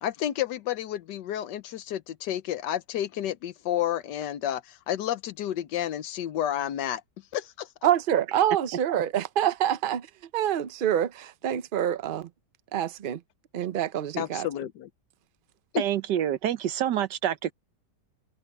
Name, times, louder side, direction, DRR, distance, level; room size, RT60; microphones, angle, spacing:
voice 1, 0.0-7.0 7.3-7.7 14.2-14.9 15.7-15.8, left 11 dB, 85° left, 1.4 m, -30 dB
voice 2, 7.8-10.1 10.3-12.3 12.7-13.2 13.5-14.5, right 10 dB, 60° right, 0.5 m, -26 dB
voice 3, 15.8-17.5, right 10 dB, 80° right, 1.5 m, -27 dB
omnidirectional pair, 1.8 m